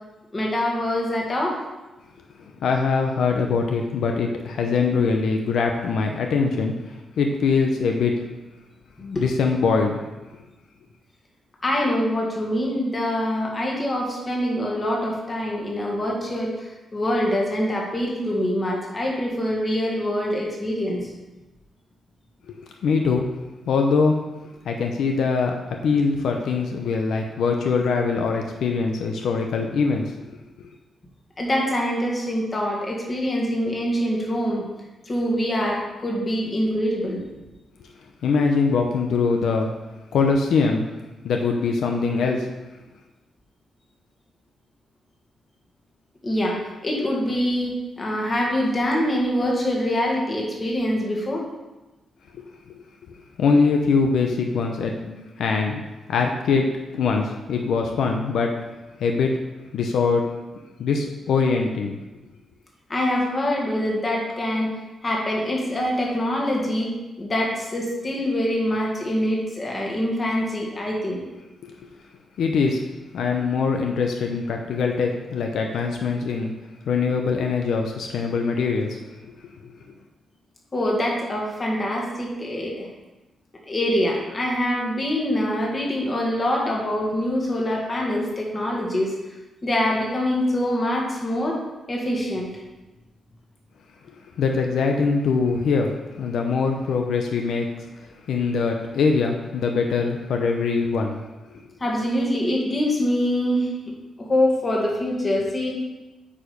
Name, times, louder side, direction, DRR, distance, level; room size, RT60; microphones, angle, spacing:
voice 1, 0.3-1.6 9.2-9.3 11.6-21.1 31.4-34.6 35.1-37.2 46.2-51.4 62.9-64.7 65.0-66.9 67.2-71.2 80.7-82.9 83.7-89.1 89.6-91.6 91.9-92.5 101.8-103.7 104.2-105.7, left 1 dB, 25° left, -2 dB, 1.8 m, -24 dB
voice 2, 2.6-6.7 7.2-8.1 9.0-10.0 22.8-23.3 23.7-24.2 24.6-30.1 38.2-39.7 40.1-40.9 41.2-42.5 52.3-52.4 53.4-55.8 56.1-56.7 57.0-58.5 59.0-59.4 59.7-60.3 60.8-62.0 71.6-71.7 72.4-72.8 73.1-76.5 76.8-79.0 79.2-79.3 79.6-79.7 94.4-97.7 98.3-101.2 101.5-101.6, left 4 dB, 75° left, 2 dB, 0.8 m, -22 dB
8.6 x 5.0 x 5.2 m, 1.1 s
wide cardioid pair, 160°, 0 cm